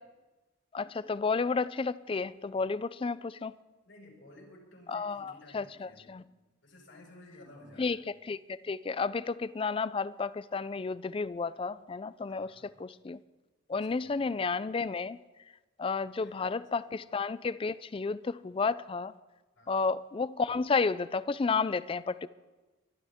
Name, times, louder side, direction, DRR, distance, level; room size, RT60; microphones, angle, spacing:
voice 1, 0.7-3.5 4.9-6.2 7.8-13.2 13.7-15.2 15.8-19.1 19.7-22.3, left 4 dB, 30° left, 17 dB, 0.3 m, -32 dB
voice 2, 3.8-6.2 6.6-7.9 11.8-11.9 12.3-12.7 13.8-14.2 16.2-16.6 19.6-19.8, left 1 dB, 90° left, -1 dB, 5.4 m, -55 dB
24.0 x 12.0 x 3.6 m, 1.2 s
head